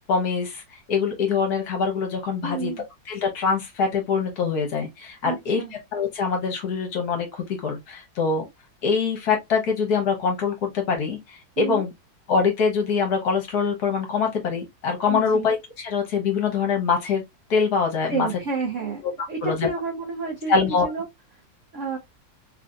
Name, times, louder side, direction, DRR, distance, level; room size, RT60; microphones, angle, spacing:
voice 1, 0.1-2.7 3.1-5.6 5.9-8.4 8.8-11.9 12.3-17.2 17.5-18.3 19.0-19.1 19.4-19.7 20.5-20.9, left 5 dB, 60° left, 1.2 m, -24 dB
voice 2, 2.4-2.8 5.2-5.7 11.6-11.8 15.1-15.5 18.1-19.0 19.3-20.5 20.8-21.0 21.7-22.0, right 4 dB, 70° right, 0.7 m, -29 dB
3.4 x 2.6 x 2.3 m
omnidirectional pair, 2.1 m